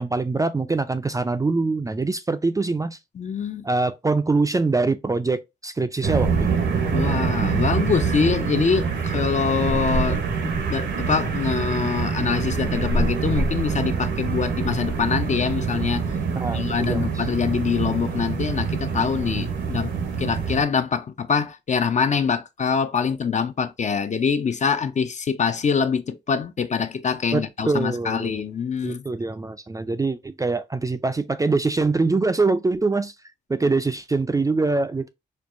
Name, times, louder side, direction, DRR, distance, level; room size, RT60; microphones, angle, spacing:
voice 1, 0.0-3.0 3.6-6.7 16.4-17.3 27.3-28.4 28.8-33.1 33.5-35.1, right 3 dB, 20° right, 0.4 m, -24 dB
voice 2, 3.2-3.7 6.9-16.0 16.5-29.0, left 6 dB, 40° left, 0.4 m, -24 dB
sound 1, 6.0-20.6, right 5 dB, 85° right, 0.9 m, -25 dB
4.4 x 2.3 x 2.5 m
cardioid pair, 70°, 18 cm